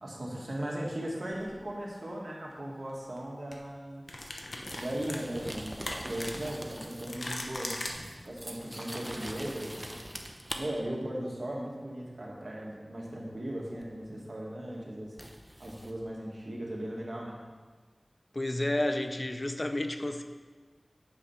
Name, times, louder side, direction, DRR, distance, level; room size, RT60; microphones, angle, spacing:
voice 1, 0.0-4.0 4.8-5.8 6.0-7.7 8.2-9.8 10.6-15.1 15.6-17.4, right 1 dB, 70° right, -3 dB, 1.8 m, -37 dB
sound 1, 1.3-1.5 3.0-3.2 3.5-3.6 4.1-7.9, left 1 dB, 75° left, 0.9 m, -39 dB
sound 2, 4.2-7.3 7.5-10.6 13.8-13.9 15.2-15.9, equal, 10° right, 0.9 m, -43 dB
voice 2, 18.3-20.2, left 1 dB, 45° left, 7 dB, 0.6 m, -31 dB
8.6 x 5.0 x 5.6 m, 1.4 s
wide cardioid pair, 40°, 0 cm